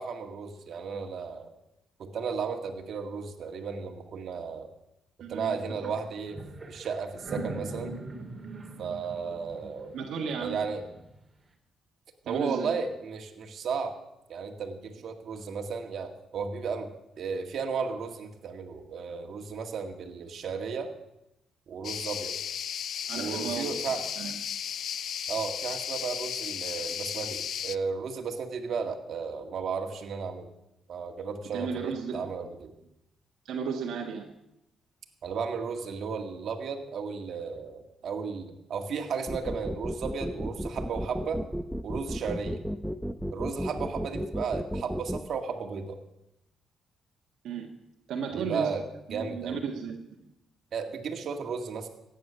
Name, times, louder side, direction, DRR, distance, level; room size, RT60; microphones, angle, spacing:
voice 1, 0.0-1.5 2.0-4.7 5.3-6.4 6.7-7.9 8.8-10.0 10.4-10.8 12.3-13.9 14.3-16.9 17.2-20.9 21.7-22.3 23.1-24.0 25.3-30.5 30.9-32.7 35.2-41.4 41.8-42.6 43.3-46.0 48.3-48.8 49.1-49.6 50.7-51.9, right 5 dB, 60° right, 4 dB, 1.9 m, -34 dB
voice 2, 5.2-5.6 5.8-5.9 9.9-10.6 12.2-12.7 23.1-23.7 24.2-24.3 31.5-32.3 33.4-34.3 47.4-47.7 48.1-48.7 49.1-50.2, right 6 dB, 80° right, 1 dB, 1.6 m, -34 dB
sound 1, 5.8-6.0 6.2-11.2, right 2 dB, 25° right, 2.6 m, -42 dB
sound 2, 21.8-27.8, left 9 dB, 65° left, 0.4 m, -34 dB
sound 3, 39.3-45.2, equal, 5° right, 0.8 m, -33 dB
15.0 x 9.3 x 6.9 m, 0.86 s
cardioid pair, 95°, 0 cm